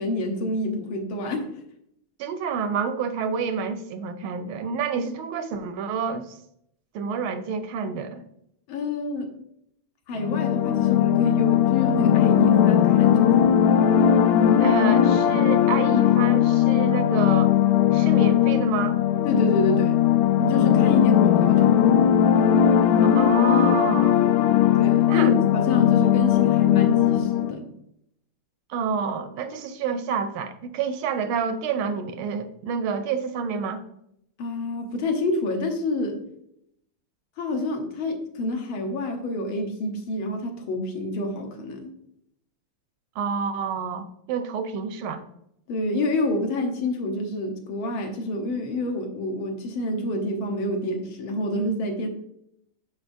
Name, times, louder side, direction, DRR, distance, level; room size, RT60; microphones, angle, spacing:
voice 1, 0.0-1.5 8.7-9.3 10.1-13.6 19.3-19.9 20.4-22.0 24.7-27.7 34.4-36.2 37.4-41.9 45.7-52.1, left 1 dB, 70° left, 4 dB, 1.7 m, -28 dB
voice 2, 2.2-6.4 6.9-8.2 14.6-17.5 17.9-19.0 23.1-24.2 25.1-25.3 28.7-33.8 43.2-45.2, right 6 dB, 80° right, 9 dB, 1.3 m, -28 dB
sound 1, 10.2-27.5, left 10 dB, 90° left, 1.5 m, -19 dB
6.7 x 6.1 x 2.6 m, 0.75 s
omnidirectional pair, 2.4 m